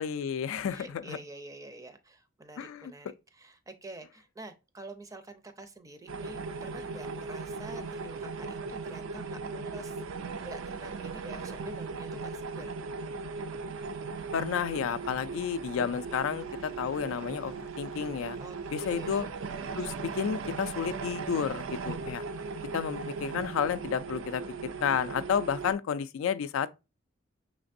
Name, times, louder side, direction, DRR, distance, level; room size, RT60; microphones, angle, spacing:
voice 1, 0.0-1.2 2.6-2.9 14.3-18.4 18.7-19.3 19.7-22.2 22.7-26.7, left 7 dB, 85° left, 0.3 m, -31 dB
voice 2, 0.7-12.7 14.9-15.1 18.4-19.3 21.9-22.3, right 2 dB, 15° right, 0.4 m, -48 dB
sound 1, 6.1-25.7, right 4 dB, 80° right, 0.4 m, -38 dB
5.8 x 3.3 x 2.6 m
head